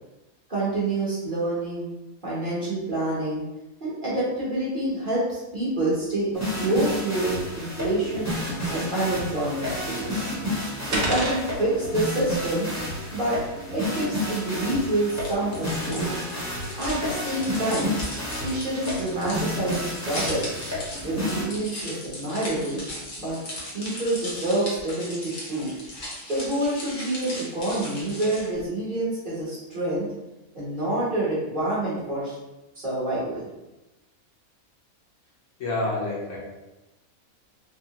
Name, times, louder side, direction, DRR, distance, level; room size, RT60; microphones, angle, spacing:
voice 1, 0.5-1.9 2.2-3.4 3.8-8.3 8.7-10.3 10.9-12.7 13.1-13.4 13.7-16.1 16.8-18.0 18.4-20.5 21.0-22.8 23.2-23.4 23.7-25.7 26.3-30.1 30.5-32.4 32.8-33.5, right 1 dB, 40° right, -9 dB, 1.0 m, -27 dB
sound 1, 6.3-21.4, left 1 dB, 15° left, 0.7 m, -31 dB
sound 2, 9.8-15.3, right 1 dB, 70° right, 1.1 m, -35 dB
sound 3, 15.2-28.6, left 1 dB, 45° left, 0.8 m, -37 dB
voice 2, 35.6-36.4, left 2 dB, 65° left, -5 dB, 1.1 m, -28 dB
3.4 x 2.0 x 2.7 m, 1.0 s
omnidirectional pair, 1.5 m